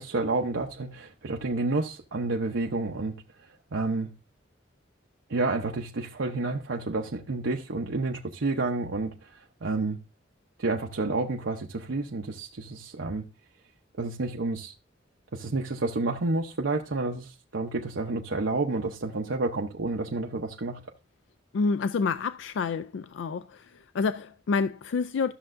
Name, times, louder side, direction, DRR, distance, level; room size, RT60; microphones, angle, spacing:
voice 1, 0.0-3.2 3.7-4.1 5.3-10.0 10.6-13.3 14.0-14.7 15.3-20.8, right 3 dB, 85° right, 0.7 m, -30 dB
voice 2, 21.5-25.3, left 4 dB, 75° left, 0.4 m, -28 dB
13.0 x 6.5 x 2.5 m
head